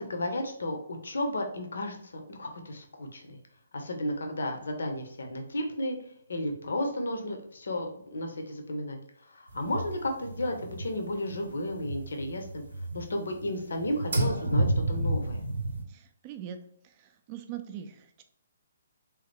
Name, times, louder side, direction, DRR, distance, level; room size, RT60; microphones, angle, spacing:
voice 1, 0.0-3.4 3.7-6.0 6.3-9.0 9.3-12.6 12.9-15.4, left 1 dB, 60° left, 4 dB, 0.7 m, -33 dB
sound 1, 9.5-11.4 11.7-13.5 13.7-15.8, right 1 dB, 65° right, 0.7 m, -30 dB
voice 2, 15.9-16.6 16.8-18.2, right 9 dB, 30° right, 7 dB, 0.4 m, -42 dB
3.5 x 3.1 x 3.2 m, 0.70 s
figure-of-eight pair, 130°, 0 cm